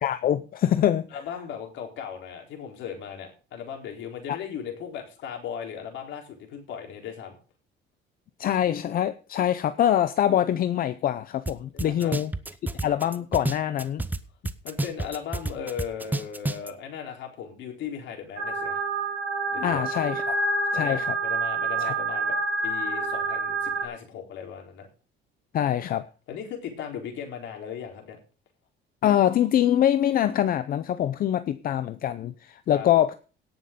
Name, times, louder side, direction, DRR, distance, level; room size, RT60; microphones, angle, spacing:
voice 1, 0.0-1.1 8.4-12.3 12.8-14.0 19.6-20.4 20.7-21.1 21.8-21.9 25.5-26.0 29.0-33.1, left 11 dB, 50° left, 12 dB, 0.6 m, -24 dB
voice 2, 1.1-7.4 11.7-12.2 14.6-18.8 19.5-19.8 20.7-22.4 22.6-24.9 26.3-28.2 32.7-32.9, left 8 dB, 70° left, 2 dB, 4.1 m, -37 dB
sound 1, 11.5-11.6 11.8-14.2 14.5-16.7, right 2 dB, 10° right, 0.7 m, -29 dB
sound 2, 18.4-23.8, right 3 dB, 85° right, 3.0 m, -28 dB
17.5 x 6.4 x 5.2 m, 0.36 s
cardioid pair, 145°, 20 cm